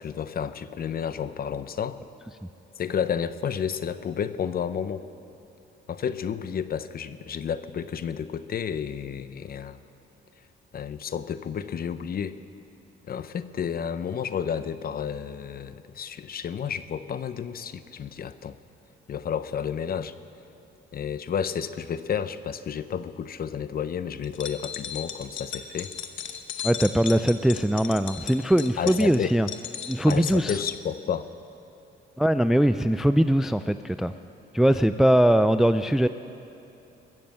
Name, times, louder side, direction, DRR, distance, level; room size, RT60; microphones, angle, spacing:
voice 1, 0.0-2.0 2.8-5.0 5.9-9.8 10.7-12.4 13.1-18.6 19.1-20.1 20.9-25.9 28.8-29.3 30.1-31.3, left 8 dB, 50° left, 13 dB, 0.7 m, -31 dB
sound 1, 24.2-30.8, left 9 dB, 70° left, 1.0 m, -36 dB
voice 2, 26.6-29.5 29.9-30.6 32.2-34.1 34.5-36.1, right 1 dB, ahead, 12 dB, 0.3 m, -21 dB
21.0 x 7.5 x 7.7 m, 2.8 s
cardioid pair, 90°, 20 cm